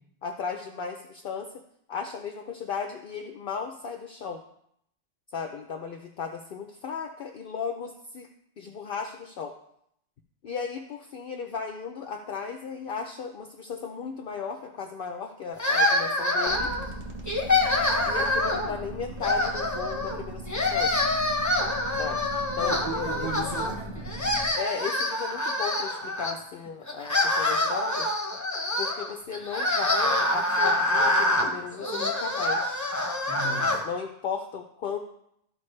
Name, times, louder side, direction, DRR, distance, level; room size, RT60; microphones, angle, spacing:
voice 1, 0.2-1.5 1.9-4.4 5.3-8.3 8.6-9.5 10.4-16.7 18.1-20.9 22.0-22.2 22.6-23.3 24.6-28.1 28.8-32.9 33.8-35.0, left 6 dB, 55° left, 5 dB, 0.7 m, -35 dB
sound 1, 15.6-16.9 17.3-18.7 19.2-20.2 20.5-23.7 24.0-26.3 26.9-33.8, left 1 dB, 15° left, 0.9 m, -26 dB
sound 2, 16.5-24.5, right 2 dB, 30° right, 1.3 m, -39 dB
voice 2, 22.5-24.3 33.3-33.8, right 1 dB, 70° right, -6 dB, 3.3 m, -36 dB
13.5 x 5.2 x 3.2 m, 0.73 s
omnidirectional pair, 1.2 m